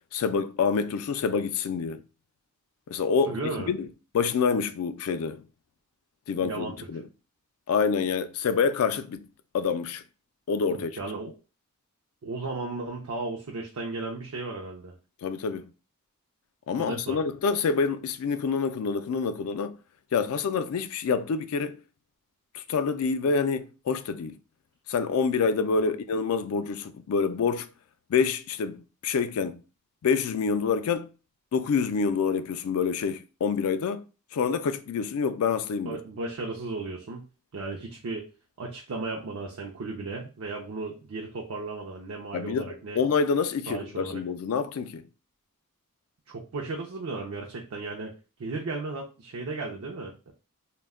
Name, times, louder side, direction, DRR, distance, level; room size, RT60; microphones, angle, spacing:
voice 1, 0.1-2.0 2.9-3.4 3.7-3.9 4.1-5.4 6.3-7.0 7.7-9.3 9.5-10.0 10.5-10.9 15.2-15.7 16.7-19.8 20.1-21.8 22.5-24.4 24.9-27.7 28.1-29.6 30.0-31.1 31.5-34.0 34.3-36.0 42.3-45.0, left 5 dB, 75° left, 0.3 m, -27 dB
voice 2, 3.2-3.7 6.4-6.8 10.7-11.3 12.2-15.0 16.8-17.2 25.8-25.9 35.9-37.3 37.5-38.3 38.6-43.0 43.7-44.2 46.3-48.1 48.4-50.3, right 3 dB, 75° right, 0.5 m, -35 dB
2.1 x 2.1 x 3.4 m
head